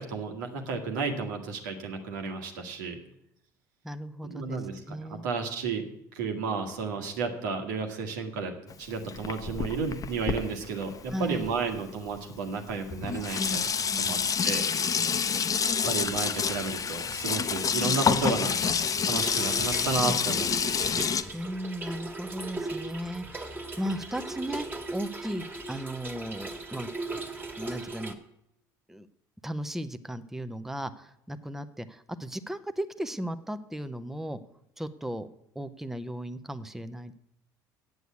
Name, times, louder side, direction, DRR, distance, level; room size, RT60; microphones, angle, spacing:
voice 1, 0.0-3.0 4.2-5.8 6.1-8.5 8.8-13.7 13.9-14.2 14.4-14.6 15.8-18.8 19.0-20.9, right 4 dB, 85° right, 4 dB, 1.7 m, -32 dB
voice 2, 3.8-5.2 11.1-11.4 13.4-13.6 13.9-14.3 21.3-23.5 23.8-26.9 27.6-28.2 28.9-29.1 29.4-34.4 34.8-35.3 35.5-37.1, equal, 5° right, 10 dB, 0.8 m, -36 dB
Sink (filling or washing), 8.7-11.8 12.6-12.7 12.9-21.2, left 6 dB, 35° left, 0.9 m, -28 dB
Trickle dribble / Fill (with liquid), 19.1-28.1, right 2 dB, 20° right, 1.8 m, -38 dB
8.2 x 7.8 x 8.3 m, 0.76 s
hypercardioid pair, 70°, 10 cm